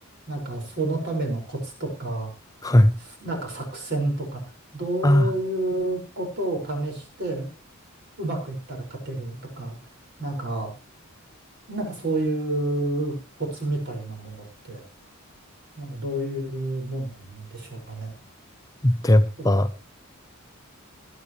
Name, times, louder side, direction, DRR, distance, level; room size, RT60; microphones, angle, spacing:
voice 1, 0.3-2.3 3.2-4.4 4.7-7.5 8.2-9.8 10.2-10.7 11.7-14.8 15.8-18.1 19.4-19.5, right 2 dB, 50° right, 1 dB, 5.8 m, -29 dB
voice 2, 18.8-19.7, left 1 dB, 15° left, 9 dB, 0.6 m, -18 dB
20.5 x 10.0 x 3.2 m, 0.30 s
head